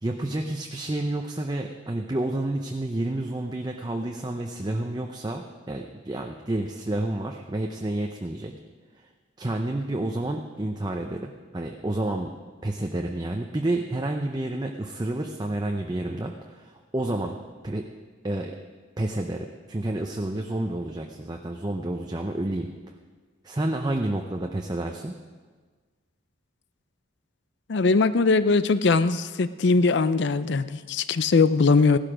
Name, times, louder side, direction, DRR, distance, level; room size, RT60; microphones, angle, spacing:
voice 1, 0.0-8.5 9.4-12.3 12.6-17.4 17.6-17.8 18.2-18.6 19.0-22.7 23.4-25.1, right 1 dB, 20° right, 3 dB, 0.6 m, -30 dB
voice 2, 27.7-32.0, left 4 dB, 60° left, 14 dB, 0.5 m, -21 dB
16.0 x 12.5 x 5.0 m, 1.5 s
head